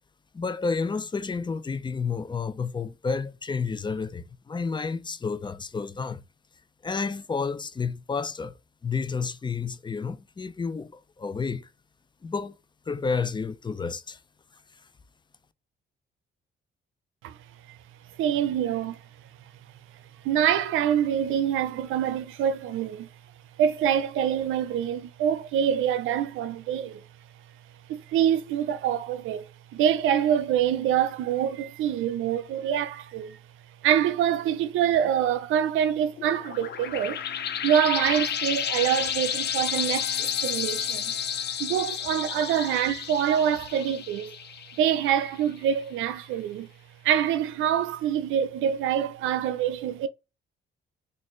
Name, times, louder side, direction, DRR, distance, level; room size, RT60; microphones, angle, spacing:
voice 1, 0.3-6.2 6.8-8.5 8.8-11.7 12.2-12.6 12.9-14.2 14.8-14.9, left 5 dB, 25° left, 0.5 m, -30 dB
voice 2, 18.2-19.0 20.2-23.1 23.6-27.0 27.9-29.4 29.7-33.4 33.8-37.2 37.6-41.1 41.6-44.3 44.8-46.7 47.0-50.1, right 9 dB, 85° right, 0.5 m, -25 dB
sound 1, 36.2-45.4, left 9 dB, 60° left, 0.7 m, -31 dB
4.1 x 2.5 x 3.1 m
cardioid pair, 90°, 20 cm